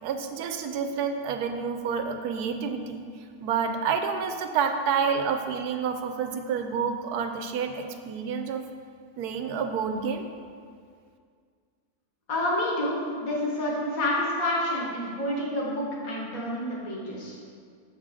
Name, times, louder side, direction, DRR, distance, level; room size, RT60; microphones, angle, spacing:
voice 1, 0.0-3.0 3.4-8.7 9.2-10.2, right 6 dB, 80° right, 6 dB, 1.1 m, -29 dB
voice 2, 12.3-17.4, left 1 dB, 65° left, -4 dB, 1.8 m, -28 dB
6.7 x 3.8 x 6.3 m, 2.1 s
omnidirectional pair, 1.6 m